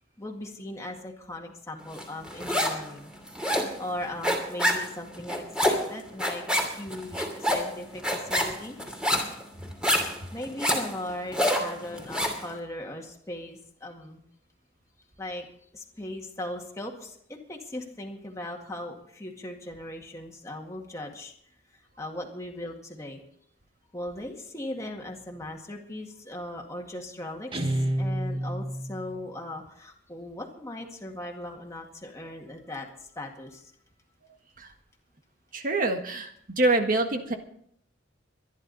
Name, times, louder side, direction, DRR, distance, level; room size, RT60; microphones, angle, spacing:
voice 1, 0.2-3.1 3.8-8.8 10.3-14.2 15.2-15.5 15.7-21.3 22.0-23.2 23.9-27.5 28.0-33.7, left 1 dB, 15° left, 0 dB, 2.0 m, -38 dB
sound 1, 2.0-2.9 3.1-12.4, equal, 5° right, 2.6 m, -27 dB
Guitar, 27.5-29.2, right 1 dB, 25° right, 1.3 m, -29 dB
voice 2, 35.5-37.3, right 2 dB, 45° right, 5 dB, 1.6 m, -25 dB
23.5 x 10.5 x 4.1 m, 0.66 s
head